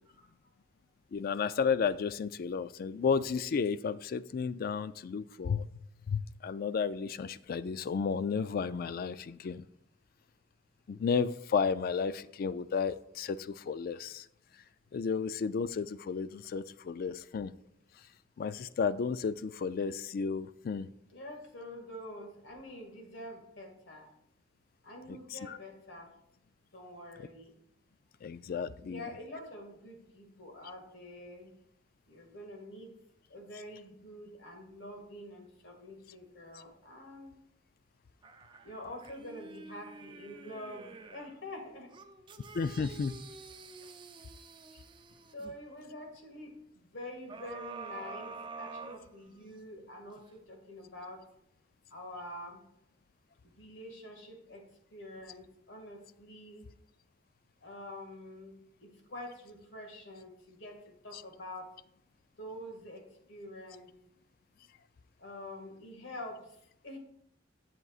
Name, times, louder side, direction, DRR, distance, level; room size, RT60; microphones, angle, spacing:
voice 1, 1.1-5.7 6.1-9.6 10.9-14.3 14.9-17.5 18.4-20.9 25.1-25.6 28.2-29.0 42.5-43.1 61.1-61.2, left 5 dB, 50° left, 15 dB, 0.3 m, -33 dB
voice 2, 21.1-24.1 24.8-26.1 26.7-27.5 28.8-31.5 32.1-32.9 33.3-37.3 38.6-41.9 43.8-43.9 45.3-51.2 51.9-52.6 53.4-54.6 54.9-56.7 57.6-61.7 62.4-63.9 65.2-66.5 66.8-67.0, left 1 dB, 80° left, 2 dB, 2.0 m, -46 dB
sound 1, 38.2-41.4 41.9-45.6 47.3-49.6 50.1-50.2, right 4 dB, 25° right, 0.5 m, -48 dB
10.5 x 7.4 x 2.4 m, 0.74 s
head